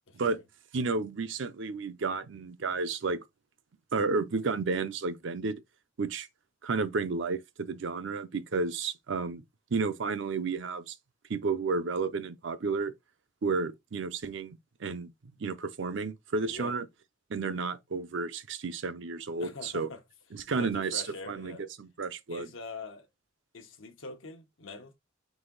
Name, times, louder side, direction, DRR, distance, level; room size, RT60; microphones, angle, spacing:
voice 1, 0.1-0.4 16.4-16.7 19.4-20.0 20.6-21.6 22.3-23.1 23.5-25.0, left 3 dB, 75° left, 0.9 m, -43 dB
voice 2, 0.7-3.2 3.9-5.6 6.0-6.3 6.6-9.4 9.7-10.9 11.3-12.9 13.4-15.1 15.4-16.8 17.3-19.9 20.3-22.5, right 4 dB, 65° right, 0.5 m, -32 dB
4.1 x 2.7 x 3.8 m
head